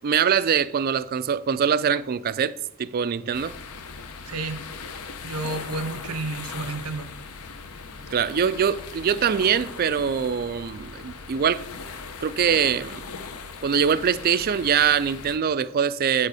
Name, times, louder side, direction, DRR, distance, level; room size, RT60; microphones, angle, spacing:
voice 1, 0.0-2.5 2.8-3.6 8.1-11.7 12.2-13.0 13.6-16.3, right 7 dB, 40° right, 0.3 m, -23 dB
sound 1, 3.3-15.4, left 5 dB, 75° left, 0.9 m, -39 dB
voice 2, 4.2-4.6 5.2-7.1, right 3 dB, 80° right, 0.9 m, -31 dB
9.0 x 6.6 x 4.8 m
head